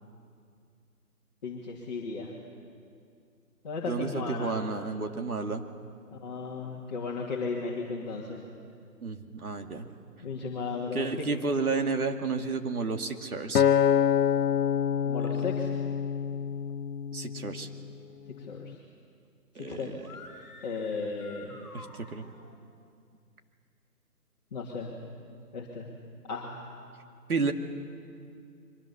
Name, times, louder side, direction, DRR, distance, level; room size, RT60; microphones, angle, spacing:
voice 1, 1.4-2.3 3.6-4.6 6.1-8.4 10.2-11.3 15.0-15.7 18.4-18.8 19.6-19.9 20.6-21.6 24.5-24.9 25.5-25.9 26.3-26.7, left 4 dB, 25° left, -4 dB, 2.3 m, -35 dB
voice 2, 3.9-5.6 9.0-9.9 10.9-13.6 17.1-17.7 19.6-20.1 21.7-22.2 27.3-27.5, right 4 dB, 65° right, 5 dB, 2.3 m, -31 dB
Acoustic guitar, 13.5-17.9 18.5-18.7, left 8 dB, 70° left, 0.6 m, -26 dB
sound 1, 19.9-22.5, left 3 dB, 5° right, 2.6 m, -50 dB
27.0 x 23.0 x 7.0 m, 2.4 s
hypercardioid pair, 165°, 48 cm